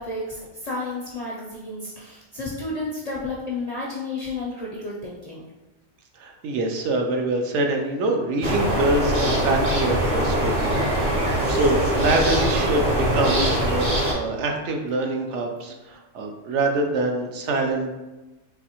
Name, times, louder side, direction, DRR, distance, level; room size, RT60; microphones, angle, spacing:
voice 1, 0.0-5.4, left 2 dB, 45° left, -5 dB, 0.5 m, -32 dB
voice 2, 6.2-18.0, right 2 dB, 75° right, 3 dB, 0.9 m, -25 dB
sound 1, 8.4-14.1, right 1 dB, 35° right, 0.7 m, -22 dB
4.0 x 2.6 x 2.8 m, 1.1 s
omnidirectional pair, 1.3 m